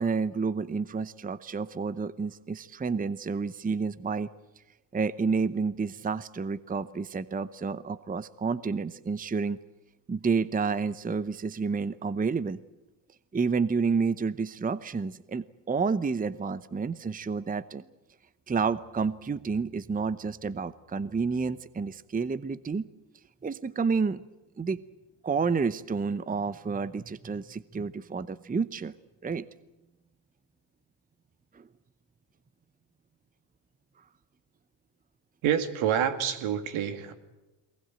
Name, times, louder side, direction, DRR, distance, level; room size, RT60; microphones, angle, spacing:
voice 1, 0.0-4.3 4.9-9.6 10.1-12.6 13.3-17.8 18.5-22.9 23.4-24.2 24.6-24.8 25.2-28.9 29.2-29.4 31.5-31.7, right 5 dB, 15° right, 16 dB, 0.8 m, -30 dB
voice 2, 35.4-37.1, right 9 dB, 70° right, 8 dB, 2.5 m, -27 dB
23.0 x 20.0 x 9.0 m, 1.0 s
supercardioid pair, 75°, 49 cm